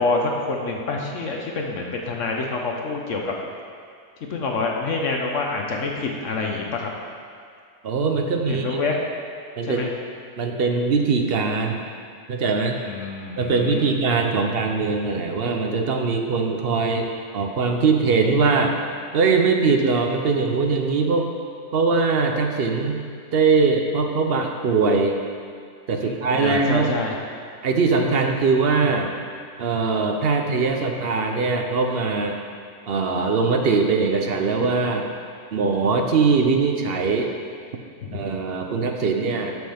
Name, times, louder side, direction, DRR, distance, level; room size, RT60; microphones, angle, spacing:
voice 1, 0.0-3.3 4.3-6.9 8.2-8.9 9.6-9.9 12.8-13.9 26.0-27.2 38.0-38.2, left 3 dB, 60° left, 0 dB, 1.0 m, -27 dB
voice 2, 7.8-8.8 9.6-9.9 10.4-11.8 12.3-12.8 13.4-17.1 17.3-18.7 19.1-21.3 21.7-23.0 23.3-25.2 25.9-26.9 27.6-29.1 29.6-32.4 32.9-35.1 35.5-37.3 38.1-39.6, right 4 dB, 55° right, 3 dB, 0.7 m, -21 dB
13.0 x 6.2 x 3.5 m, 2.2 s
omnidirectional pair, 1.6 m